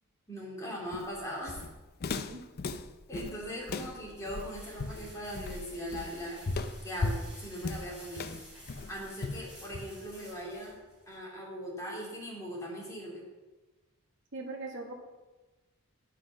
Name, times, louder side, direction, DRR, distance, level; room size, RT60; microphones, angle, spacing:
voice 1, 0.3-1.6 3.1-6.4 6.8-8.3 8.9-10.8 11.1-13.2, equal, 15° left, -4 dB, 2.7 m, -40 dB
Walk footsteps, 0.9-10.2, left 3 dB, 45° left, 0.5 m, -37 dB
sound 1, 3.3-11.2, equal, 5° right, 3.7 m, -53 dB
voice 2, 14.3-14.9, right 3 dB, 55° right, 3 dB, 1.3 m, -40 dB
9.7 x 5.8 x 6.2 m, 1.2 s
head